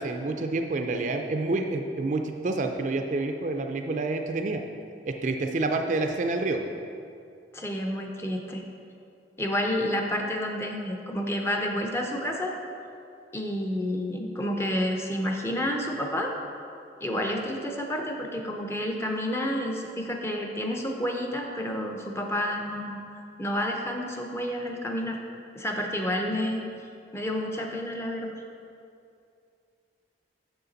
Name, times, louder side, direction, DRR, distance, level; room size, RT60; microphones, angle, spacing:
voice 1, 0.0-4.6 5.1-6.6, right 2 dB, 45° right, 5 dB, 0.4 m, -28 dB
voice 2, 7.5-8.6 9.4-12.5 13.3-16.3 17.0-25.2 25.5-26.6 27.1-28.4, left 1 dB, 15° left, 1 dB, 0.5 m, -30 dB
6.8 x 6.5 x 3.9 m, 2.5 s
head